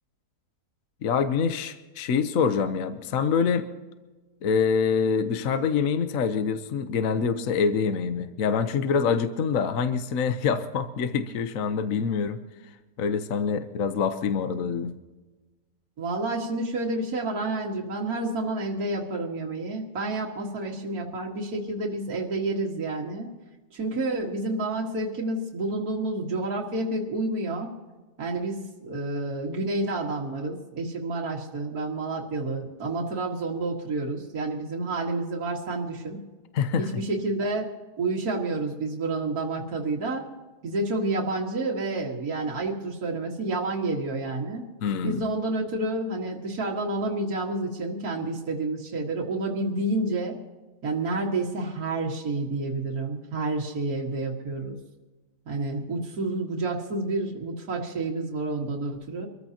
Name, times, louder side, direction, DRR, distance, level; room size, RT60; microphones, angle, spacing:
voice 1, 1.0-3.7 4.4-12.4 13.0-14.9 36.5-37.0 44.8-45.2, left 6 dB, 60° left, 9 dB, 1.1 m, -25 dB
voice 2, 16.0-23.3 23.7-27.7 28.2-36.2 36.8-37.7 38.0-40.3 40.6-44.7 45.0-50.4 50.8-54.8 55.5-59.3, right 2 dB, 60° right, -3 dB, 2.2 m, -29 dB
25.5 x 14.5 x 2.8 m, 1.2 s
omnidirectional pair, 1.8 m